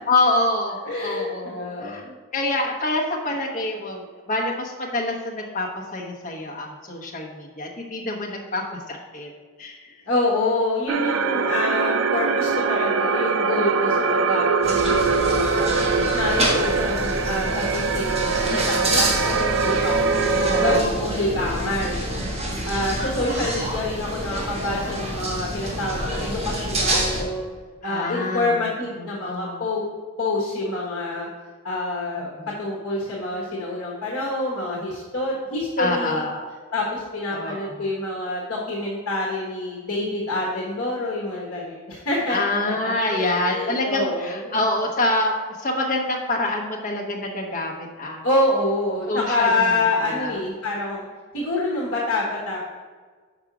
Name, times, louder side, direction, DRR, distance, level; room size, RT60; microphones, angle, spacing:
voice 1, 0.1-2.0 2.3-9.3 9.6-9.9 15.2-16.0 20.4-21.0 27.8-28.7 29.0-29.6 32.2-32.5 35.8-36.5 37.3-37.7 42.3-45.3 45.6-48.2 49.1-49.7 50.0-50.4, left 2 dB, 35° left, -1 dB, 1.1 m, -26 dB
voice 2, 0.8-2.1 10.1-20.2 20.6-22.2 22.6-27.4 27.8-29.8 30.2-31.3 31.6-36.2 36.7-44.6 48.2-51.1 51.3-52.6, left 2 dB, 55° left, -3 dB, 1.3 m, -27 dB
sound 1, 10.9-20.8, right 5 dB, 55° right, 0.4 m, -23 dB
sound 2, 14.6-27.2, right 1 dB, 30° right, 1.3 m, -27 dB
5.4 x 5.0 x 6.0 m, 1.5 s
head